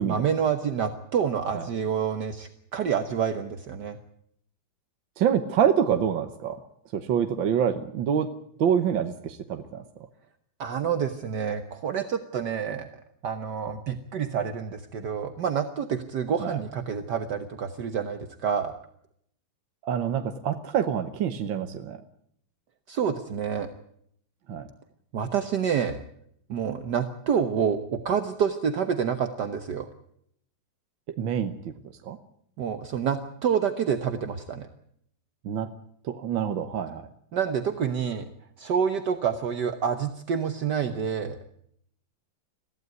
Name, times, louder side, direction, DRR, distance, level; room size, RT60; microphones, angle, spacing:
voice 1, 0.0-4.0 10.6-12.9 13.2-18.7 22.9-23.7 25.1-26.0 26.5-29.9 32.6-34.7 37.3-38.3 38.6-41.4, right 7 dB, 60° right, 8 dB, 1.7 m, -28 dB
voice 2, 5.2-6.6 6.9-8.3 8.6-9.8 16.4-16.6 19.8-22.0 24.5-24.7 31.2-31.7 32.0-32.2 35.5-35.7 36.0-37.1, right 8 dB, 80° right, 8 dB, 1.8 m, -26 dB
22.0 x 15.5 x 9.5 m, 0.70 s
omnidirectional pair, 2.1 m